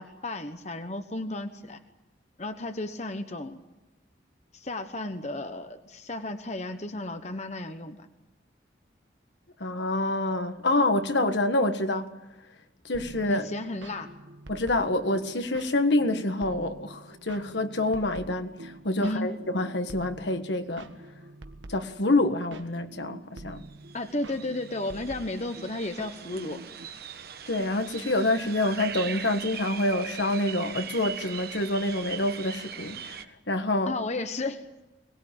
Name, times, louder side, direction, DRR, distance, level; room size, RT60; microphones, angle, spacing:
voice 1, 0.0-1.8 2.4-3.6 4.5-8.1 13.3-14.1 19.0-19.3 23.9-26.6 33.9-34.6, left 2 dB, 40° left, 1.1 m, -33 dB
voice 2, 9.6-12.1 12.8-13.5 14.5-20.9 21.7-23.6 27.5-33.9, left 2 dB, 70° left, 1.6 m, -27 dB
sound 1, 12.9-26.9, right 1 dB, 85° right, 1.5 m, -46 dB
sound 2, 23.6-23.7 23.9-33.2, right 8 dB, 55° right, 1.3 m, -40 dB
23.0 x 19.5 x 8.9 m
head